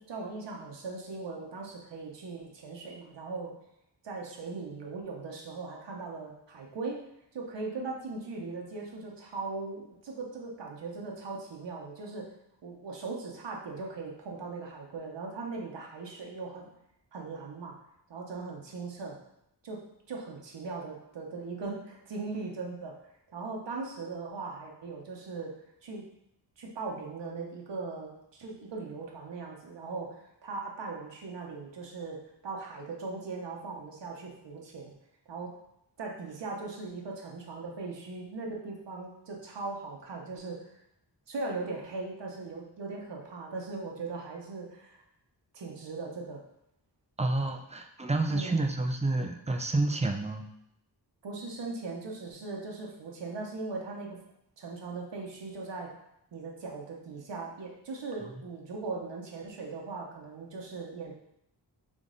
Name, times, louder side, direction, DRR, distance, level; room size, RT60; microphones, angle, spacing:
voice 1, 0.0-3.5 4.0-7.0 7.3-12.3 12.6-16.7 17.1-17.7 18.1-19.2 19.6-19.8 20.1-22.9 23.3-25.5 25.8-26.0 26.6-34.9 35.3-35.5 36.0-40.7 41.3-45.0 45.5-46.4 48.3-48.6 51.2-54.2 54.6-55.9 56.3-61.1, right 3 dB, 85° right, -1 dB, 0.9 m, -39 dB
voice 2, 47.2-50.4, right 2 dB, 15° right, 4 dB, 0.4 m, -29 dB
3.8 x 3.6 x 3.8 m, 0.77 s
wide cardioid pair, 110°, 42 cm